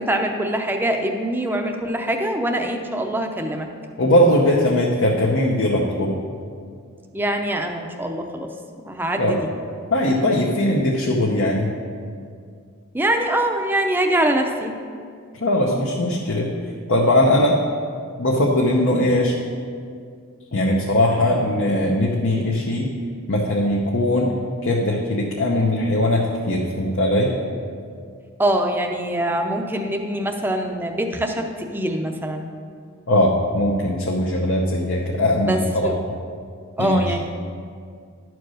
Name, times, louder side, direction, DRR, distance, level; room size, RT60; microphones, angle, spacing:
voice 1, 0.0-3.7 7.1-8.5 8.8-9.4 12.9-14.7 28.4-32.5 35.3-35.9 36.8-37.2, right 1 dB, 10° right, 3 dB, 0.6 m, -23 dB
voice 2, 4.0-6.1 9.2-9.4 9.9-11.7 15.4-16.5 16.9-17.6 18.2-19.3 20.5-22.9 23.3-24.3 24.6-27.4 33.1-35.9 36.8-37.2, left 1 dB, 65° left, -2 dB, 0.9 m, -20 dB
11.5 x 4.6 x 6.3 m, 2.2 s
head